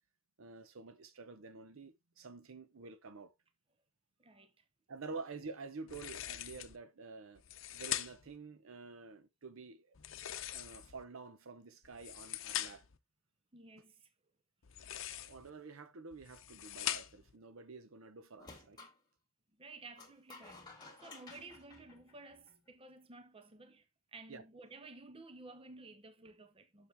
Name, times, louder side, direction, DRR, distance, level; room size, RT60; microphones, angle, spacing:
voice 1, 0.4-3.3 4.9-7.4 7.7-9.9 10.5-12.8 15.2-18.8 24.3-24.4, right 4 dB, 75° right, 0.7 m, -49 dB
voice 2, 4.2-4.6 13.5-14.1 14.7-15.1 19.6-23.8 24.1-26.9, right 3 dB, 25° right, 0.7 m, -54 dB
Tape Measure, 5.9-6.8 7.4-8.4 9.9-11.0 11.8-13.0 14.6-15.5 16.1-17.3, left 12 dB, 65° left, 0.7 m, -42 dB
sound 1, 18.4-19.0 20.0-22.7, left 3 dB, 20° left, 2.2 m, -55 dB
7.2 x 6.5 x 3.3 m
head